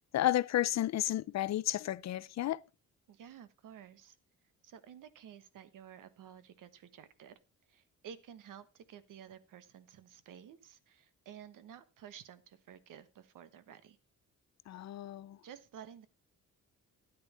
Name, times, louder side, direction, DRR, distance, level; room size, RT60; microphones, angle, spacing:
voice 1, 0.1-2.6 14.7-15.4, left 13 dB, 60° left, 0.5 m, -32 dB
voice 2, 3.1-4.2 4.6-7.4 7.7-14.0 15.4-16.1, right 9 dB, 85° right, 1.3 m, -52 dB
12.5 x 9.7 x 4.2 m
wide cardioid pair, 155°, 31 cm